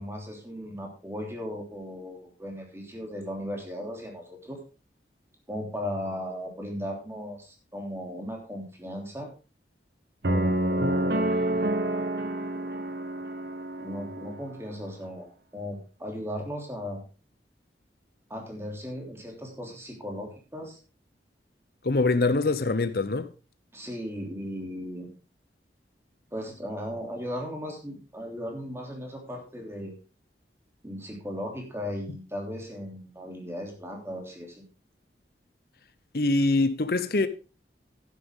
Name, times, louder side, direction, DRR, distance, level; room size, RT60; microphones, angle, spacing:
voice 1, 0.0-4.6 5.5-9.3 10.2-11.3 13.8-17.0 18.3-20.8 23.7-25.1 26.3-30.0 30.8-34.7, equal, 15° right, 3.1 m, -37 dB
sound 1, 10.2-14.4, right 1 dB, 65° right, 1.4 m, -28 dB
voice 2, 21.8-23.3 36.1-37.3, left 3 dB, 55° left, 0.8 m, -24 dB
11.5 x 10.0 x 3.7 m
head